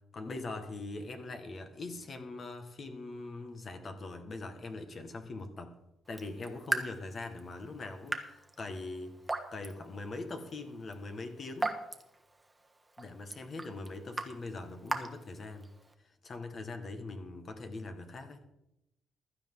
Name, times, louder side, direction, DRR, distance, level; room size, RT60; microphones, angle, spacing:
voice 1, 0.1-5.7 6.1-9.2 9.5-11.8 13.0-15.7 16.0-18.4, left 2 dB, 40° left, 6 dB, 1.6 m, -42 dB
Raindrop / Drip, 6.0-15.9, right 2 dB, 10° right, 1.4 m, -41 dB
15.5 x 12.5 x 3.8 m, 0.86 s
cardioid pair, 135°, 0 cm